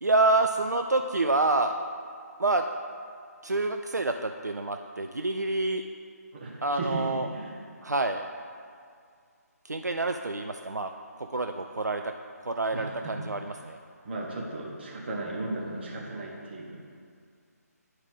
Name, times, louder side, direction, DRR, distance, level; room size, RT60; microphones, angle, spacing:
voice 1, 0.0-1.7 2.4-2.6 3.4-5.8 6.6-7.3 7.8-8.2 9.6-10.9 11.2-12.0 12.4-13.8, right 2 dB, 85° right, 6 dB, 0.4 m, -27 dB
voice 2, 6.3-7.0 7.3-7.5 12.7-13.2 14.0-16.8, right 2 dB, 40° right, -3 dB, 1.4 m, -35 dB
10.5 x 4.8 x 3.6 m, 2.2 s
figure-of-eight pair, 150°, 9 cm